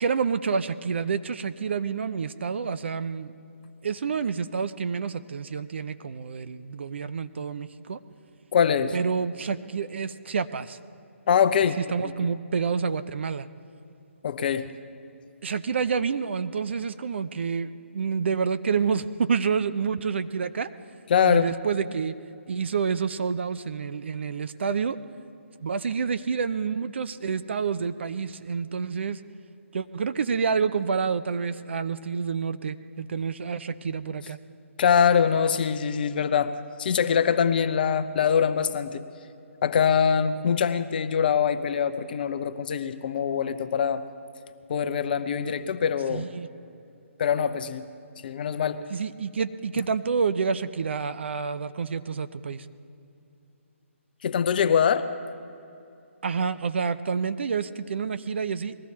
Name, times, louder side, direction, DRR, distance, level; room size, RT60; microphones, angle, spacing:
voice 1, 0.0-3.3 3.8-8.0 8.9-10.8 11.8-13.5 15.4-20.7 21.2-22.1 22.5-25.0 25.6-29.2 29.7-34.4 46.1-46.5 48.9-52.7 56.2-58.7, right 5 dB, 55° right, 12 dB, 0.6 m, -28 dB
voice 2, 8.5-9.0 11.3-12.1 14.2-14.7 21.1-21.5 34.8-36.5 36.8-39.0 39.6-44.0 44.7-46.3 47.2-47.9 48.2-48.8 54.2-55.1, left 7 dB, 40° left, 11 dB, 0.7 m, -23 dB
20.5 x 14.0 x 4.2 m, 2.6 s
figure-of-eight pair, 145°, 7 cm